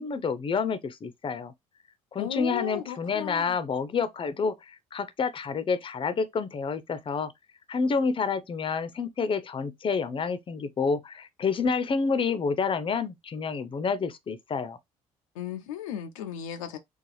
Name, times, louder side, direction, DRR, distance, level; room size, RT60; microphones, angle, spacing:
voice 1, 0.0-1.5 2.1-7.3 7.7-14.8, left 5 dB, 30° left, 0.6 m, -29 dB
voice 2, 2.2-3.6 15.3-16.8, left 10 dB, 75° left, 0.5 m, -35 dB
4.0 x 2.4 x 3.1 m
figure-of-eight pair, 50°, 17 cm